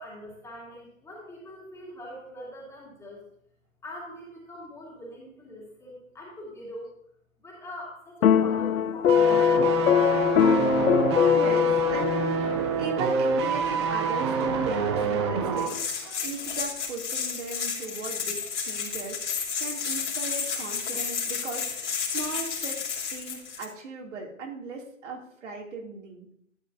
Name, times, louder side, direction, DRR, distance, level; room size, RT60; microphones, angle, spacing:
voice 1, 0.0-3.3 3.8-6.9 7.4-10.0, equal, 5° left, -5 dB, 2.4 m, -43 dB
sound 1, 8.2-12.7, left 8 dB, 80° left, 0.5 m, -22 dB
sound 2, 9.1-15.8 16.0-16.2, right 5 dB, 20° right, 0.7 m, -27 dB
voice 2, 11.3-26.3, right 3 dB, 60° right, -1 dB, 2.9 m, -38 dB
sound 3, 15.6-23.7, left 6 dB, 60° left, 2.9 m, -32 dB
11.5 x 8.4 x 2.7 m, 0.68 s
hypercardioid pair, 140°, 41 cm